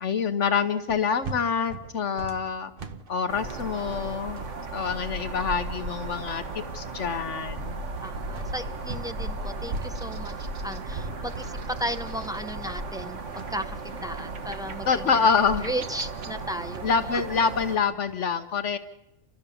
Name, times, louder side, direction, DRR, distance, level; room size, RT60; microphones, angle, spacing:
voice 1, 0.0-2.7 3.1-4.4 4.7-7.8 14.9-15.7 16.8-18.8, left 6 dB, 65° left, 10 dB, 1.2 m, -26 dB
sound 1, 0.9-9.1 9.4-18.2, right 4 dB, 45° right, 1.2 m, -42 dB
sound 2, 3.3-17.8, right 3 dB, 65° right, 1.7 m, -35 dB
voice 2, 8.0-15.1 15.6-16.8, equal, 5° right, 8 dB, 0.4 m, -35 dB
30.0 x 13.0 x 7.0 m, 0.93 s
omnidirectional pair, 1.3 m